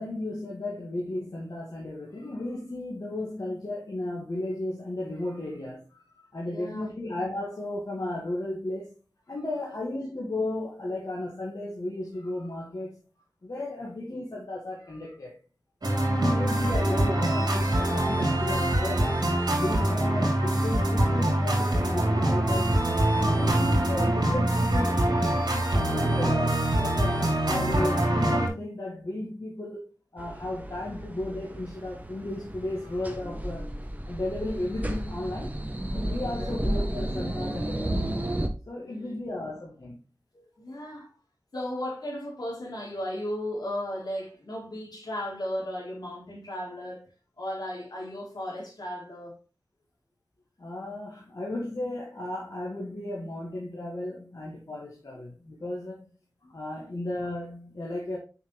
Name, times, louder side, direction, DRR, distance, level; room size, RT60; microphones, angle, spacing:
voice 1, 0.0-8.9 9.3-13.0 13.4-15.4 16.1-19.2 19.5-22.7 23.0-25.2 25.7-29.8 30.1-33.7 34.1-35.6 35.9-38.2 38.7-40.0 50.6-56.0 56.5-58.2, left 1 dB, 65° left, 2.1 m, -34 dB
voice 2, 6.4-6.9 23.4-23.8 25.8-26.5 36.2-36.6 38.8-39.3 40.3-41.1 41.5-47.1 47.4-49.4 56.4-56.6, left 1 dB, 80° left, 3.8 m, -36 dB
sound 1, 15.8-28.5, right 1 dB, 85° right, 2.7 m, -24 dB
sound 2, 30.2-38.5, right 1 dB, 25° right, 1.1 m, -33 dB
7.2 x 5.7 x 3.4 m
wide cardioid pair, 65°, 7 cm